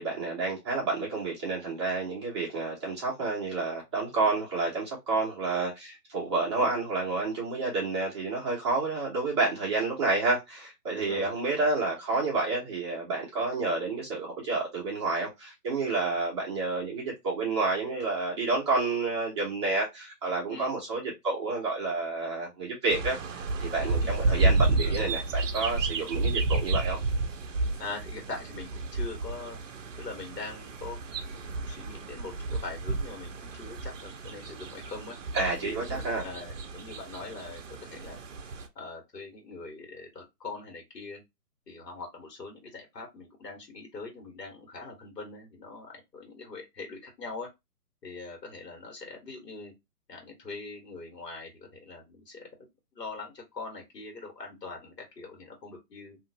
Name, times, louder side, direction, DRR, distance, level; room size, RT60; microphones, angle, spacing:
voice 1, 0.0-27.0 35.3-36.2, right 3 dB, 15° right, 0.8 m, -29 dB
voice 2, 10.9-11.3 20.5-20.8 23.8-24.5 24.8-24.9 27.8-29.6 30.0-35.2 35.6-38.2 38.8-41.2 41.7-47.5 48.0-49.7 50.1-56.2, left 3 dB, 75° left, 1.7 m, -42 dB
sound 1, 22.9-38.7, right 3 dB, 50° right, 0.6 m, -31 dB
2.9 x 2.5 x 2.8 m
hypercardioid pair, 155°, 49 cm